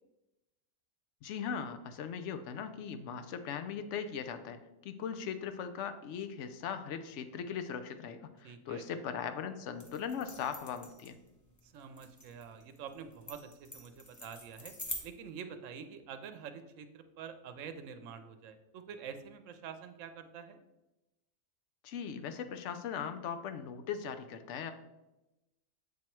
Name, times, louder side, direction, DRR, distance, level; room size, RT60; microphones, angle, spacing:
voice 1, 1.2-11.2 21.8-24.7, left 7 dB, 70° left, 10 dB, 0.8 m, -39 dB
voice 2, 8.4-8.9 11.6-14.7 15.0-20.6, right 7 dB, 75° right, 9 dB, 0.9 m, -47 dB
sound 1, 9.8-15.0, left 1 dB, 20° left, 0.6 m, -46 dB
7.4 x 2.9 x 4.5 m, 0.98 s
omnidirectional pair, 1.4 m